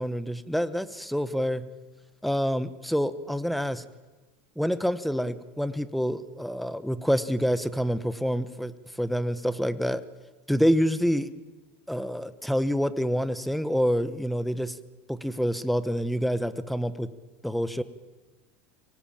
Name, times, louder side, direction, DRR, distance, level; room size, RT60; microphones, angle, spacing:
voice 1, 0.0-1.6 2.2-3.8 4.6-8.7 9.0-10.0 10.5-11.3 11.9-14.7 15.1-17.1 17.4-17.8, equal, ahead, 14 dB, 1.1 m, -27 dB
24.0 x 18.0 x 9.0 m, 1.2 s
supercardioid pair, 130°, 7 cm